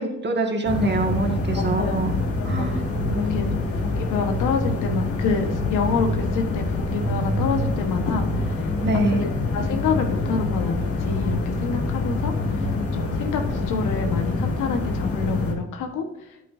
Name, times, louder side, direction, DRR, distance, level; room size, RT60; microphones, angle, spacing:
voice 1, 0.0-2.8 3.1-3.6 8.8-9.3, right 2 dB, 35° right, 3 dB, 1.8 m, -25 dB
sound 1, 0.6-15.5, left 2 dB, 50° left, 2.0 m, -25 dB
voice 2, 1.5-2.0 2.4-2.7 3.2-8.7 9.1-16.4, left 5 dB, 85° left, 5 dB, 1.4 m, -28 dB
9.3 x 8.4 x 2.7 m, 0.89 s
cardioid pair, 90°, 30 cm